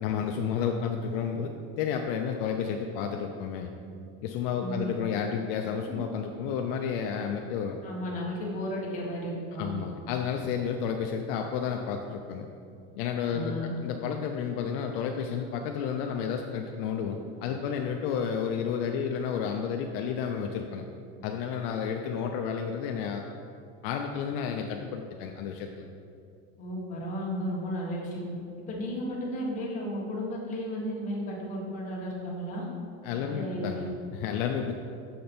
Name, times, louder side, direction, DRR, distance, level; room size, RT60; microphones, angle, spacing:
voice 1, 0.0-1.5 1.8-3.7 4.2-7.8 9.6-12.5 12.9-20.8 21.2-23.2 23.8-25.8 33.0-34.7, left 7 dB, 65° left, 3 dB, 0.5 m, -31 dB
voice 2, 4.6-4.9 5.9-6.0 7.8-9.7 13.3-13.7 26.6-28.2 28.7-32.7 33.3-33.9, equal, 25° left, -4 dB, 1.3 m, -34 dB
6.7 x 5.1 x 4.3 m, 2.5 s
cardioid pair, 165°, 30 cm